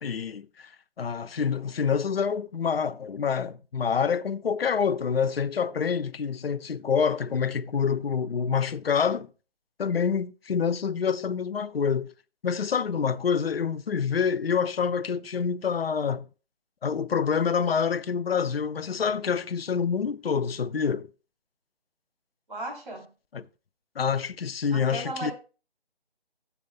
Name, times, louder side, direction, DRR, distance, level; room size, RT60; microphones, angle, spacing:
voice 1, 0.0-0.7 1.0-9.3 9.8-12.1 12.4-16.3 16.8-21.1 23.3-23.5 24.0-25.3, left 6 dB, 70° left, 0.5 m, -27 dB
voice 2, 22.5-23.0 24.7-25.3, right 2 dB, 50° right, 3.3 m, -35 dB
14.0 x 6.8 x 2.2 m
figure-of-eight pair, 155°, 31 cm